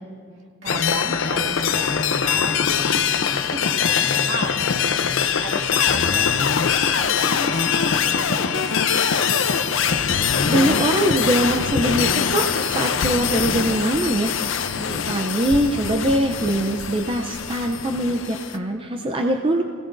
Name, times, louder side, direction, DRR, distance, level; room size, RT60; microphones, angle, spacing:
voice 1, 0.6-1.8 2.2-2.9 3.3-5.0 5.4-9.1 14.7-15.1, right 1 dB, 65° right, -1 dB, 2.1 m, -34 dB
sound 1, 0.7-18.6, left 7 dB, 70° left, 0.6 m, -22 dB
voice 2, 10.2-14.4 15.1-19.6, right 1 dB, 25° right, 3 dB, 0.5 m, -22 dB
24.5 x 16.5 x 2.6 m, 2.3 s
head